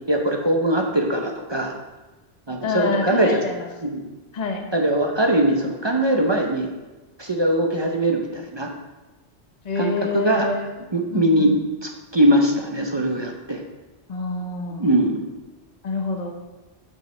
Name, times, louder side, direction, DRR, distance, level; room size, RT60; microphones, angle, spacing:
voice 1, 0.1-1.7 2.5-3.4 3.8-4.1 4.7-6.7 7.2-8.7 9.8-10.5 10.9-11.5 11.8-13.6 14.8-15.2, right 1 dB, 30° right, 2 dB, 0.6 m, -21 dB
voice 2, 2.6-3.7 4.3-4.6 9.6-10.7 11.1-11.6 14.1-14.9 15.8-16.4, left 3 dB, 40° left, 3 dB, 1.0 m, -26 dB
8.7 x 7.4 x 3.2 m, 1.1 s
omnidirectional pair, 1.1 m